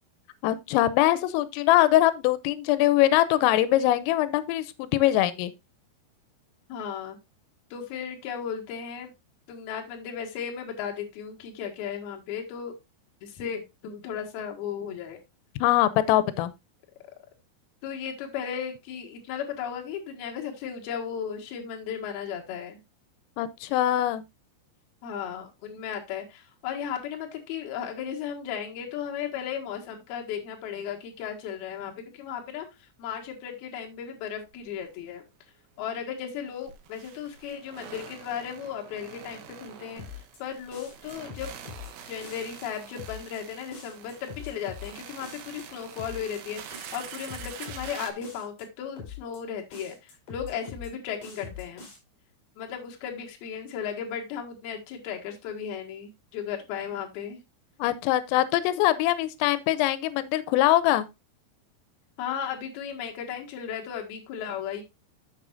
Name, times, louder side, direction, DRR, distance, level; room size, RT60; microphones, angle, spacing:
voice 1, 0.4-5.5 15.6-16.5 23.4-24.2 57.8-61.1, left 14 dB, 90° left, 3.3 m, -22 dB
voice 2, 6.7-7.2 7.7-9.1 9.5-12.8 13.2-15.2 17.8-22.8 25.0-35.2 35.8-40.0 40.4-41.5 42.1-51.9 52.6-57.4 62.2-64.8, left 8 dB, 60° left, 3.1 m, -35 dB
sound 1, 34.4-34.5 34.8-34.9 36.5-48.1, right 8 dB, 80° right, 3.6 m, -45 dB
sound 2, 40.0-40.4 40.7-41.9 42.2-42.6 43.0-43.4 43.7-44.9 45.2-45.6 46.0-46.4 46.7-47.9 48.2-48.6 49.0-49.4 49.7-50.9 51.2-52.0, left 7 dB, 40° left, 5.3 m, -42 dB
11.0 x 7.0 x 2.5 m
omnidirectional pair, 5.7 m